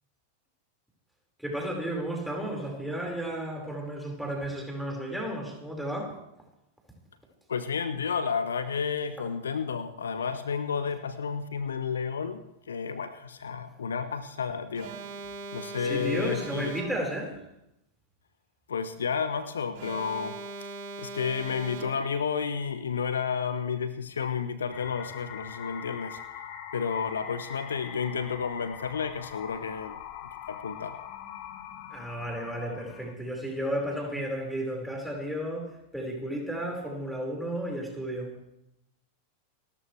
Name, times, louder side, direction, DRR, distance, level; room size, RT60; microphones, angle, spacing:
voice 1, 1.4-6.2 9.2-9.3 15.8-17.4 31.9-38.3, right 1 dB, ahead, -1 dB, 5.3 m, -33 dB
voice 2, 7.5-14.9 15.5-16.7 18.7-20.7 21.0-26.2 26.7-30.0 30.5-31.0, left 6 dB, 70° left, 12 dB, 1.1 m, -31 dB
Alarm, 14.7-17.3 19.7-22.3, right 3 dB, 50° right, 3.1 m, -40 dB
sound 1, 24.7-33.1, left 9 dB, 45° left, 1.7 m, -43 dB
30.0 x 13.5 x 3.4 m, 0.83 s
figure-of-eight pair, 90°, 0 cm